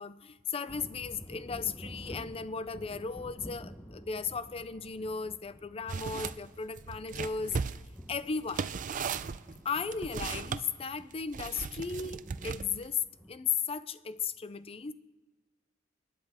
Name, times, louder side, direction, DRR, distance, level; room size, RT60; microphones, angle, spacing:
voice 1, 0.0-7.6 8.1-8.7 9.6-13.0 13.3-14.9, left 5 dB, 30° left, 0.5 m, -36 dB
sound 1, 0.7-13.4, equal, 5° left, 0.9 m, -50 dB
sound 2, 5.9-6.4 6.8-10.6 11.3-12.9, right 5 dB, 45° right, 0.4 m, -37 dB
28.5 x 10.0 x 3.5 m
head